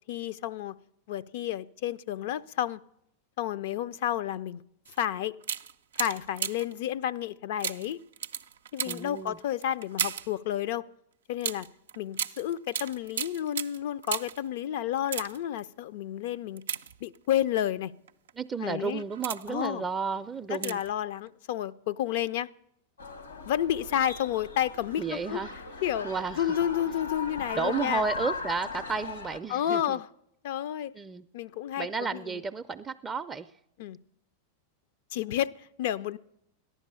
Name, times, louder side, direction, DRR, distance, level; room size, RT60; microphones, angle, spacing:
voice 1, 0.1-0.8 1.1-2.8 3.4-4.6 5.0-5.4 6.0-8.0 8.7-10.8 11.3-11.7 12.0-16.6 17.0-17.9 18.6-19.0 19.5-19.8 20.5-22.5 23.4-25.4 25.8-26.1 26.4-28.0 29.5-30.1 30.4-30.9 31.3-32.4 33.8-34.0 35.1-36.2, left 11 dB, 60° left, 0.5 m, -31 dB
sound 1, 4.9-5.0 5.4-6.8 7.6-10.4 11.4-14.5 15.0-15.6 16.6-17.4 18.1-18.3 18.9-19.7 20.5-21.0 21.3-21.4, right 8 dB, 75° right, 0.5 m, -35 dB
voice 2, 8.8-9.4 18.4-20.8 25.0-25.5 26.0-26.5 27.5-30.0 30.9-31.3 31.8-33.5, right 5 dB, 20° right, 0.4 m, -32 dB
sound 2, 23.0-29.4, left 4 dB, 90° left, 1.7 m, -38 dB
14.0 x 11.0 x 6.8 m
hypercardioid pair, 95°, 0 cm